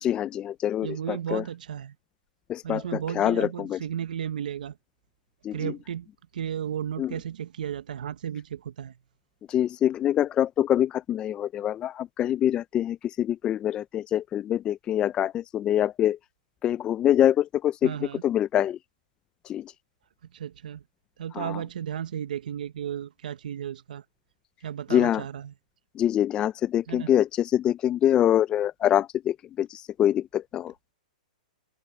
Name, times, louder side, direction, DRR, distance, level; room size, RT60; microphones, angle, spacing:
voice 1, 0.0-1.4 2.5-2.8 3.2-3.8 5.5-5.7 7.0-7.1 9.5-16.2 16.6-17.9 18.2-18.8 19.5-19.6 21.4-21.6 24.9-25.2 26.0-30.7, left 11 dB, 20° left, 0.3 m, -25 dB
voice 2, 0.8-1.9 2.6-4.7 5.5-6.1 6.3-8.9 17.8-18.2 20.3-20.8 21.2-24.0 24.6-25.5 26.9-27.1, right 9 dB, 80° right, 0.9 m, -34 dB
open air
hypercardioid pair, 145°, 4 cm